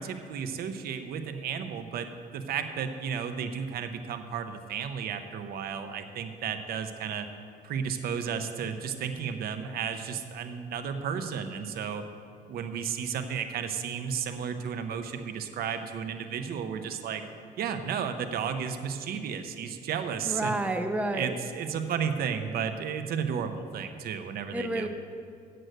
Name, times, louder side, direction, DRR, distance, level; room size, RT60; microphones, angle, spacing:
voice 1, 0.0-7.3 7.6-12.1 12.5-17.2 17.6-20.6 21.1-24.9, right 7 dB, 65° right, 9 dB, 0.8 m, -33 dB
voice 2, 20.3-21.3 24.5-24.9, right 1 dB, 10° right, 6 dB, 0.7 m, -29 dB
7.8 x 7.7 x 7.9 m, 2.3 s
cardioid pair, 110°, 17 cm